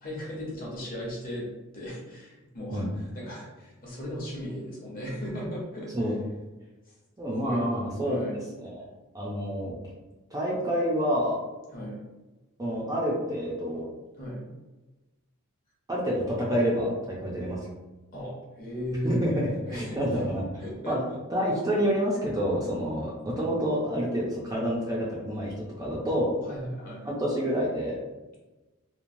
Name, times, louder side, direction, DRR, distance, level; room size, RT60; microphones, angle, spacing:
voice 1, 0.0-1.5 1.7-5.9 7.3-7.8 8.0-8.4 11.7-12.0 14.2-14.5 18.1-19.2 19.7-20.0 20.6-21.2 26.4-27.0, equal, 40° left, -4 dB, 0.8 m, -36 dB
voice 2, 7.2-8.3 8.6-8.8 9.1-9.8 10.3-11.4 12.6-13.9 15.9-17.7 19.0-21.0 21.3-26.3 27.2-28.0, equal, 15° right, -5 dB, 0.4 m, -28 dB
2.9 x 2.1 x 2.5 m, 1.1 s
head